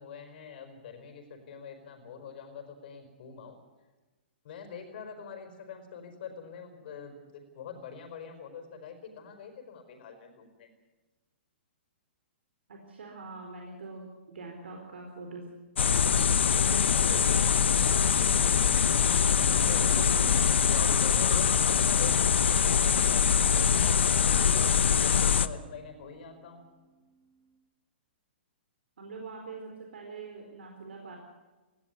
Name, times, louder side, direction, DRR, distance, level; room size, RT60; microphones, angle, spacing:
voice 1, 0.0-3.6 4.4-10.7 19.6-20.0 20.7-26.6, left 6 dB, 55° left, 6 dB, 5.0 m, -44 dB
voice 2, 12.7-15.5 15.7-16.3 16.7-18.5 19.8-20.4 29.0-31.2, right 3 dB, 80° right, 1 dB, 4.2 m, -43 dB
sound 1, 15.8-25.5, left 7 dB, 80° left, 0.9 m, -23 dB
sound 2, 17.3-27.6, right 3 dB, 20° right, 5.9 m, -54 dB
18.5 x 16.0 x 9.7 m, 1.2 s
hypercardioid pair, 140°, 6 cm